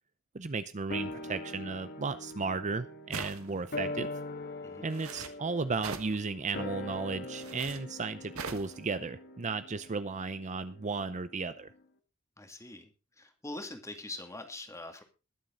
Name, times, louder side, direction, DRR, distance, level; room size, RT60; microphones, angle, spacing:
voice 1, 0.3-4.1 4.8-11.7, right 4 dB, 35° right, 12 dB, 0.6 m, -35 dB
sound 1, 0.9-11.5 11.8-11.9, left 2 dB, 50° left, 1.6 m, -42 dB
sound 2, 3.1-3.7 4.9-5.3 5.8-6.2 7.3-7.8 8.3-8.7, right 5 dB, 75° right, 1.7 m, -40 dB
voice 2, 12.4-12.9 13.2-15.0, left 2 dB, 15° left, 6 dB, 2.3 m, -43 dB
21.5 x 7.5 x 3.9 m, 0.31 s
head